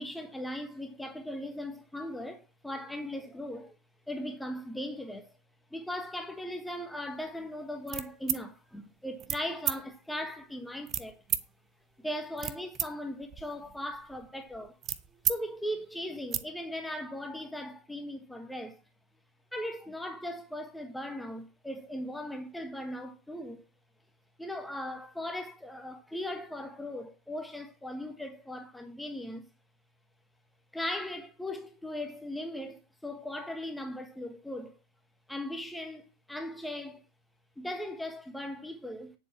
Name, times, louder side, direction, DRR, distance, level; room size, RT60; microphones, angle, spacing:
voice 1, 0.0-3.7 4.1-5.4 5.7-11.2 12.0-14.8 15.3-18.8 19.5-23.6 24.4-29.4 30.7-34.7 35.3-37.0 37.6-39.1, left 1 dB, 5° left, 1.3 m, -38 dB
sound 1, 7.9-8.4 9.2-9.4 9.7-9.8 10.9-11.5 12.1-12.9 13.2-15.4 15.7-15.8 16.1-16.4, right 10 dB, 30° right, 0.8 m, -33 dB
10.0 x 6.9 x 5.8 m
figure-of-eight pair, 90°, 0 cm